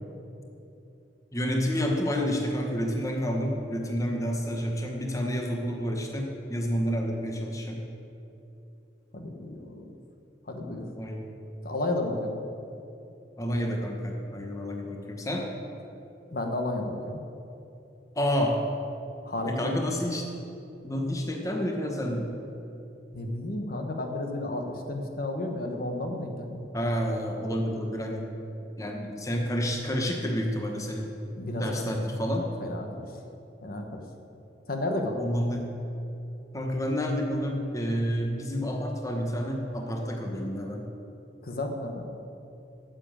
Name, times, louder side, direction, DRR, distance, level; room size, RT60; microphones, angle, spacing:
voice 1, 1.3-7.8 11.0-11.3 13.4-15.5 18.2-18.6 19.5-20.3 20.8-22.3 26.7-28.3 28.8-31.1 31.6-32.5 35.2-35.7 36.5-40.9, equal, 20° left, 1 dB, 1.0 m, -29 dB
voice 2, 9.1-9.9 10.5-10.8 11.6-12.4 16.3-17.2 19.2-20.0 23.1-26.7 31.4-31.9 32.6-33.0 33.6-34.0 34.7-35.2 41.4-42.2, left 1 dB, 55° left, 3 dB, 1.2 m, -32 dB
9.7 x 7.6 x 8.8 m, 2.8 s
head